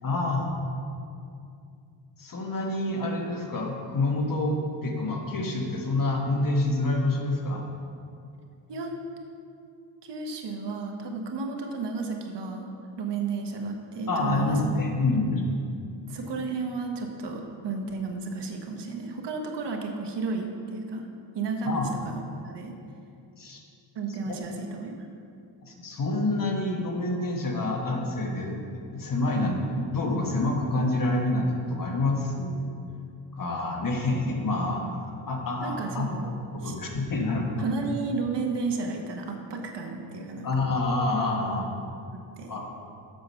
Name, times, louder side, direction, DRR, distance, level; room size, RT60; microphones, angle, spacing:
voice 1, 0.0-0.5 2.2-7.6 14.1-15.5 21.6-21.9 23.4-23.6 24.3-24.4 25.6-32.6 33.3-34.8 35.3-36.0 36.5-37.6 40.4-41.7 42.5-42.7, left 2 dB, 45° left, 1 dB, 1.4 m, -27 dB
voice 2, 10.0-12.7 13.0-14.6 16.1-21.1 21.3-22.8 23.9-25.0 35.6-36.3 36.6-36.7 37.6-40.5 42.1-42.6, right 4 dB, 65° right, 3 dB, 1.2 m, -32 dB
7.6 x 7.0 x 5.6 m, 2.5 s
cardioid pair, 110°, 45 cm